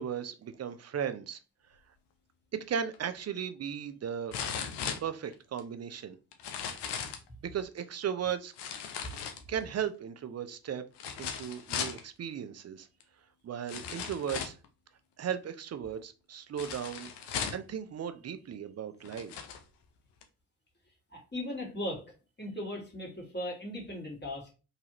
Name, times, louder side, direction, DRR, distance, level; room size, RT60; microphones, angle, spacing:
voice 1, 0.0-1.4 2.7-4.3 5.0-6.2 7.4-8.5 9.5-10.8 11.2-12.9 13.4-14.6 15.2-19.3, right 8 dB, 35° right, 10 dB, 0.5 m, -36 dB
sound 1, 2.9-3.0 4.3-5.6 6.3-7.3 8.6-9.7 11.0-12.0 13.0-13.1 13.7-14.7 16.6-17.7 18.5-18.6 19.0-19.6 20.2-20.3, left 7 dB, 65° left, 0.8 m, -37 dB
voice 2, 21.1-22.0 22.4-24.5, left 1 dB, 25° left, -1 dB, 2.1 m, -38 dB
4.0 x 2.7 x 3.0 m, 0.32 s
hypercardioid pair, 45°, 44 cm